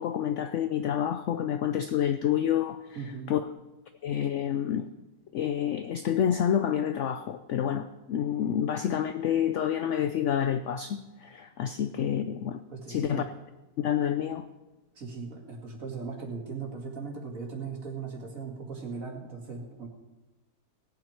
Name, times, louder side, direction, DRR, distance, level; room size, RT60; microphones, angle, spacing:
voice 1, 0.0-2.8 3.3-3.4 4.0-4.9 5.3-12.6 12.9-13.3 13.8-14.5, left 9 dB, 70° left, 10 dB, 0.7 m, -28 dB
voice 2, 2.9-3.3 12.7-13.2 15.0-19.9, right 5 dB, 55° right, -1 dB, 2.6 m, -38 dB
18.5 x 9.0 x 4.5 m, 1.1 s
omnidirectional pair, 1.8 m